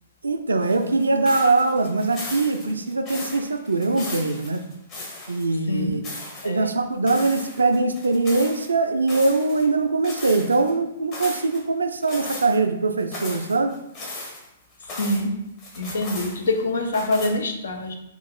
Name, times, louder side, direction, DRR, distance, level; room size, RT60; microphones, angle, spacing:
voice 1, 0.2-4.6 5.3-6.0 6.4-13.7, right 3 dB, 75° right, 7 dB, 0.4 m, -22 dB
sound 1, 0.6-5.5 5.8-6.5 7.1-8.7 9.1-9.7 10.0-10.7 11.1-11.6 12.0-12.6 13.0-15.3 15.6-16.6 16.9-17.3, left 2 dB, 35° left, 1.1 m, -37 dB
voice 2, 14.8-15.4 15.8-18.0, left 2 dB, 65° left, 4 dB, 0.6 m, -25 dB
3.8 x 2.4 x 3.7 m, 0.82 s
figure-of-eight pair, 110°, 0 cm